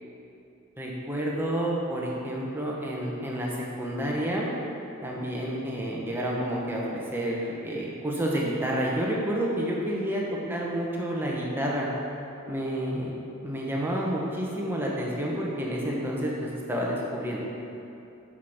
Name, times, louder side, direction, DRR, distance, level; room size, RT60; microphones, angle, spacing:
voice 1, 0.8-4.5 5.0-10.2 10.5-11.9 12.5-13.1 13.4-17.4, right 1 dB, 10° right, -3 dB, 0.9 m, -29 dB
6.6 x 4.9 x 5.9 m, 2.8 s
head